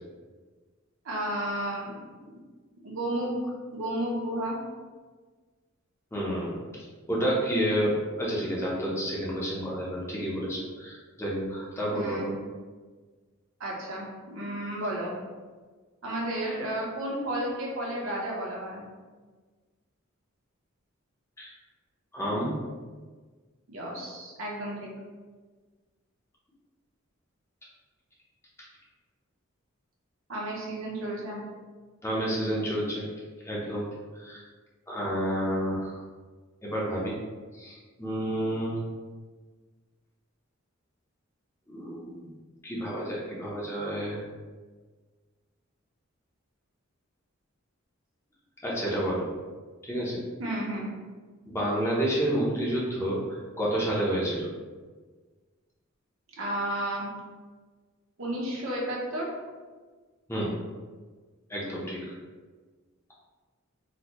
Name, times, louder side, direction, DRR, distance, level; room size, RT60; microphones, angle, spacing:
voice 1, 1.0-2.4 2.8-4.6 11.9-12.3 13.6-15.1 16.0-18.8 23.7-24.9 30.3-31.4 50.4-50.9 56.3-57.1 58.2-59.3, right 1 dB, 70° right, -3 dB, 0.9 m, -32 dB
voice 2, 6.1-12.3 21.4-21.5 22.1-22.5 32.0-33.1 33.4-33.9 34.1-34.4 34.9-36.0 36.6-37.2 37.5-38.8 41.7-42.3 42.6-44.2 48.6-49.3 49.8-50.2 51.5-54.5 60.3-60.5 61.5-62.0, right 1 dB, 15° left, -5 dB, 0.6 m, -30 dB
4.0 x 2.1 x 2.9 m, 1.4 s
head